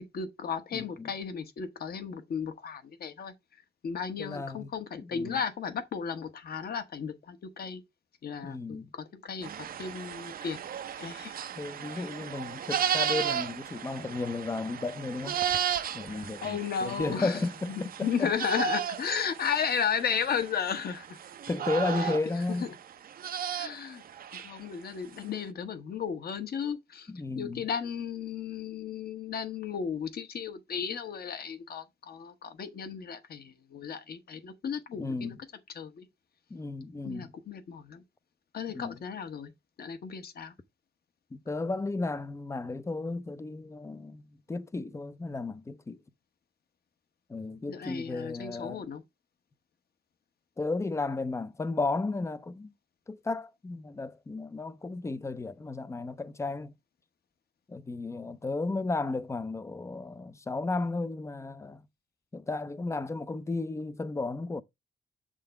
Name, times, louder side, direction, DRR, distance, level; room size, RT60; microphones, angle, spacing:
voice 1, 0.0-3.3 3.8-7.8 8.2-10.6 11.0-11.3 11.9-12.1 16.1-21.2 21.9-22.7 23.5-24.0 24.3-35.3 35.7-36.1 37.0-38.0 38.5-39.5 39.8-40.5 47.7-49.0, left 7 dB, 55° left, 1.1 m, -34 dB
voice 2, 0.7-1.1 4.2-4.7 5.0-5.4 8.4-8.9 11.6-15.4 15.9-18.3 21.5-22.7 27.1-27.6 35.0-35.4 36.5-37.3 38.7-39.0 41.3-44.2 44.5-46.0 47.3-48.8 50.6-52.7 53.1-56.7 57.7-61.8 62.3-64.6, left 3 dB, 15° left, 0.4 m, -34 dB
sound 1, 9.4-24.6, right 9 dB, 50° right, 0.5 m, -35 dB
7.7 x 3.7 x 4.6 m
wide cardioid pair, 165°, 19 cm